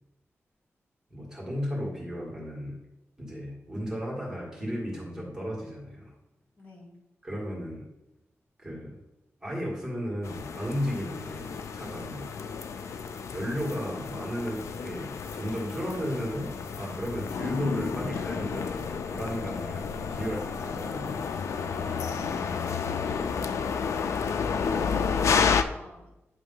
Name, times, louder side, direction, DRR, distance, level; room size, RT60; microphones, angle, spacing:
voice 1, 1.1-2.8 3.2-6.1 7.2-7.9 8.6-8.9 9.4-12.3 13.3-21.2, equal, 10° right, -4 dB, 1.8 m, -34 dB
voice 2, 6.6-7.0 21.8-22.9 24.7-26.2, equal, 45° left, -5 dB, 2.3 m, -47 dB
sound 1, 10.2-25.6, left 6 dB, 90° left, 0.4 m, -31 dB
9.1 x 3.0 x 5.4 m, 0.91 s
wide cardioid pair, 160°, 5 cm